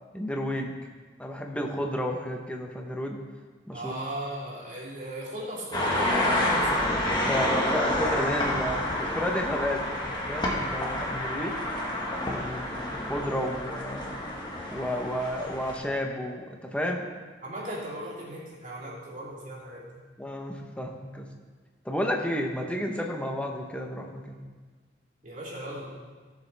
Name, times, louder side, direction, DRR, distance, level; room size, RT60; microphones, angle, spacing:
voice 1, 0.1-0.7 1.2-3.2 3.7-3.9 7.2-9.8 10.1-11.6 12.3-12.7 13.0-14.2 14.7-17.1 20.2-21.3 21.8-24.4, equal, 5° left, 1 dB, 0.9 m, -31 dB
voice 2, 3.7-6.8 17.4-20.0 25.2-25.9, right 1 dB, 45° right, -6 dB, 3.0 m, -37 dB
sound 1, 5.7-15.8, left 1 dB, 25° left, 1.5 m, -29 dB
16.0 x 7.1 x 3.4 m, 1.4 s
head